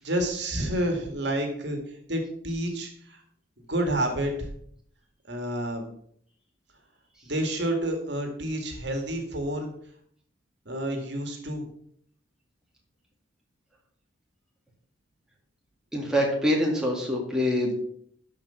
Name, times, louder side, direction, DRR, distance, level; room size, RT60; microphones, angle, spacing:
voice 1, 0.0-3.2 3.7-4.5 5.3-5.9 7.2-9.7 10.7-11.7, right 1 dB, 55° right, 4 dB, 2.1 m, -29 dB
voice 2, 15.9-17.8, equal, 5° right, -2 dB, 2.0 m, -25 dB
12.5 x 5.2 x 5.8 m, 0.64 s
head